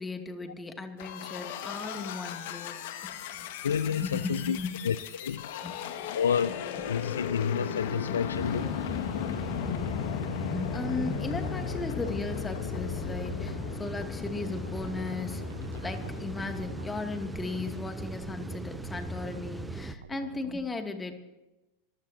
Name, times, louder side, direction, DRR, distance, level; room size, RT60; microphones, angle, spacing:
voice 1, 0.0-3.5 3.9-4.9 5.6-5.8 6.0-6.1 10.5-15.4 15.8-21.1, left 3 dB, 15° left, 2.6 m, -36 dB
sound 1, 1.0-17.6, left 8 dB, 60° left, 1.8 m, -36 dB
voice 2, 3.6-4.6 4.8-5.5 6.1-6.6 6.9-8.7, left 7 dB, 80° left, 0.6 m, -29 dB
sound 2, 8.3-20.0, right 2 dB, 5° right, 0.7 m, -39 dB
sound 3, 14.4-20.5, right 7 dB, 75° right, 1.1 m, -47 dB
26.5 x 16.0 x 2.9 m
hypercardioid pair, 90°, 0 cm